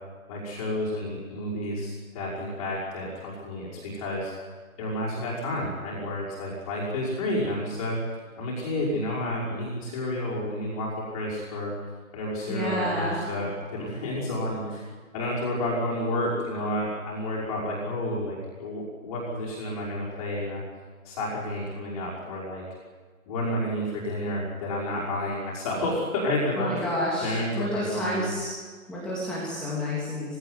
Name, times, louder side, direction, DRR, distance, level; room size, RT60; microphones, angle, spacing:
voice 1, 0.3-11.7 12.1-14.8 15.1-20.6 21.0-22.6 23.3-26.9 27.2-28.3, left 1 dB, 25° left, -6 dB, 5.6 m, -30 dB
voice 2, 12.5-13.2 26.6-28.5 28.9-30.4, left 1 dB, ahead, -8 dB, 3.1 m, -29 dB
22.5 x 17.5 x 9.7 m, 1.5 s
figure-of-eight pair, 155°, 42 cm